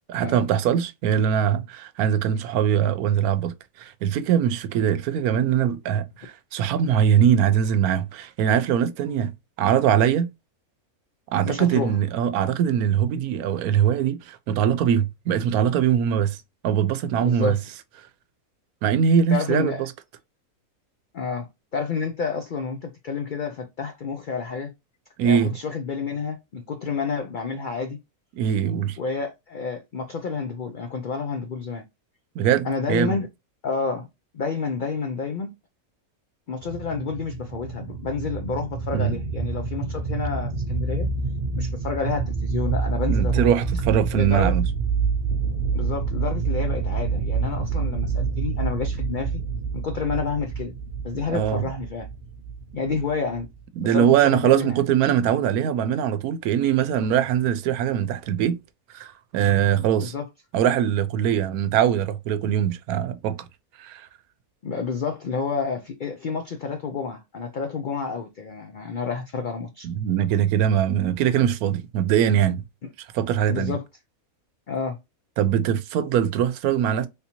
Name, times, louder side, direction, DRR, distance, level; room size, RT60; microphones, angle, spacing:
voice 1, 0.1-9.3 9.6-10.3 11.3-16.4 16.6-17.6 18.8-19.9 25.2-25.5 28.3-29.0 32.4-33.2 38.9-39.2 43.1-44.7 51.3-51.6 53.8-58.6 58.9-60.1 60.5-63.4 63.8-64.1 69.8-72.6 73.1-73.7 75.4-77.1, right 9 dB, 90° right, 1.1 m, -22 dB
voice 2, 11.4-11.9 17.2-17.6 19.3-19.8 21.1-21.5 21.7-24.7 25.2-28.0 29.0-31.8 32.6-33.3 33.6-34.1 34.3-35.5 36.5-41.1 41.5-43.5 44.1-44.5 45.7-49.4 49.7-50.7 51.0-52.1 52.7-53.5 53.8-54.7 59.8-60.2 64.6-69.9 73.5-73.8 74.7-75.0, left 5 dB, 75° left, 0.4 m, -29 dB
sound 1, 36.6-53.6, right 5 dB, 55° right, 0.6 m, -27 dB
3.5 x 2.7 x 2.8 m
omnidirectional pair, 1.5 m